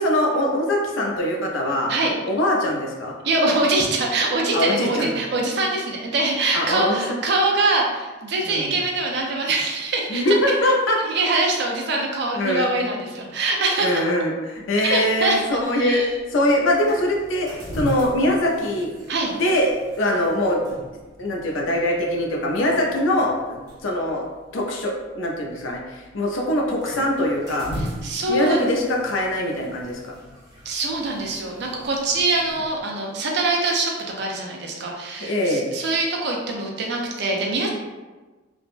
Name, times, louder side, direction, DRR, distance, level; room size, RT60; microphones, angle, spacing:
voice 1, 0.0-1.9 2.2-3.1 4.5-5.1 6.5-7.2 8.5-8.7 10.1-11.0 12.3-12.7 13.8-16.0 16.3-18.9 19.4-20.6 21.2-24.2 24.5-27.7 28.3-30.1 35.2-35.7, left 1 dB, 80° left, 0 dB, 0.5 m, -22 dB
voice 2, 3.2-10.7 11.0-14.0 14.8-15.5 15.7-16.1 19.1-19.3 27.7-28.7 30.6-33.9 34.2-37.7, right 2 dB, 60° right, 0 dB, 0.5 m, -24 dB
sound 1, 14.6-32.8, equal, 20° right, 0.7 m, -40 dB
3.3 x 2.1 x 2.5 m, 1.2 s
head